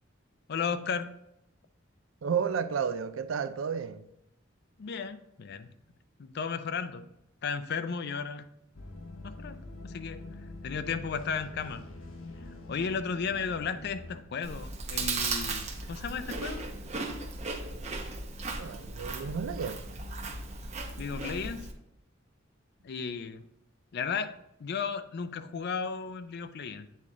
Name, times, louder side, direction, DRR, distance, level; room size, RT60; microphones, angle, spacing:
voice 1, 0.5-1.2 4.8-5.7 6.2-7.0 7.4-8.5 9.2-10.2 10.6-11.8 12.7-16.7 21.0-21.7 22.8-23.4 23.9-24.3 24.6-26.9, left 6 dB, 55° left, 0.4 m, -34 dB
voice 2, 2.2-4.1 18.6-19.8, right 6 dB, 75° right, 0.4 m, -32 dB
sound 1, 8.7-14.2, left 2 dB, 75° left, 0.8 m, -45 dB
Chewing mastication, 14.4-21.7, right 3 dB, 35° right, 0.7 m, -36 dB
8.5 x 3.7 x 3.8 m
head